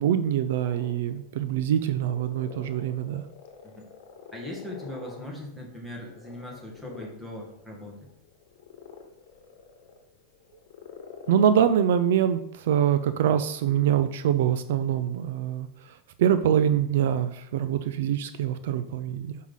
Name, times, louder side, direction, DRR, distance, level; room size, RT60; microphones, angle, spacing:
voice 1, 0.0-3.2 11.3-19.4, right 9 dB, 75° right, 11 dB, 0.4 m, -24 dB
sound 1, 0.6-11.7, left 6 dB, 65° left, 1.3 m, -47 dB
voice 2, 4.3-8.1, left 1 dB, 5° right, -2 dB, 1.7 m, -40 dB
6.1 x 5.6 x 4.0 m, 0.77 s
supercardioid pair, 145°, 0 cm